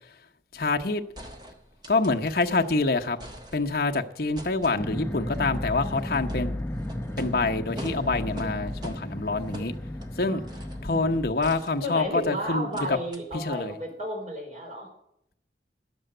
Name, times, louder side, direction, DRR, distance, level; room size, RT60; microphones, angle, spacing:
voice 1, 0.5-1.0 1.9-3.2 3.5-6.5 7.2-9.7 10.2-10.4 10.8-13.0 13.3-13.7, left 3 dB, 55° left, 4 dB, 0.9 m, -26 dB
sound 1, 1.2-2.7 3.0-3.9 4.4-10.9 11.4-12.3 12.7-12.9 13.1-13.2, equal, 25° right, 1.3 m, -44 dB
sound 2, 4.8-11.3, left 1 dB, 15° left, 0.5 m, -34 dB
voice 2, 11.8-14.9, equal, 40° right, -2 dB, 4.5 m, -33 dB
11.0 x 7.1 x 7.7 m, 0.75 s
head